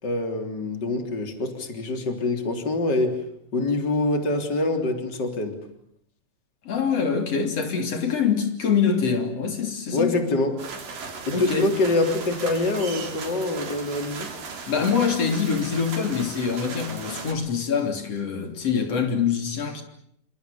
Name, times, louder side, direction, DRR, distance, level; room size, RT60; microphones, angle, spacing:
voice 1, 0.0-3.2 3.5-5.6 9.9-10.6 11.3-14.3, left 2 dB, 30° left, 3.8 m, -25 dB
voice 2, 6.7-10.1 11.3-11.7 14.7-19.8, left 6 dB, 50° left, 4.2 m, -24 dB
sound 1, 10.6-17.3, right 4 dB, 80° right, 5.2 m, -37 dB
28.5 x 26.5 x 7.0 m
omnidirectional pair, 3.8 m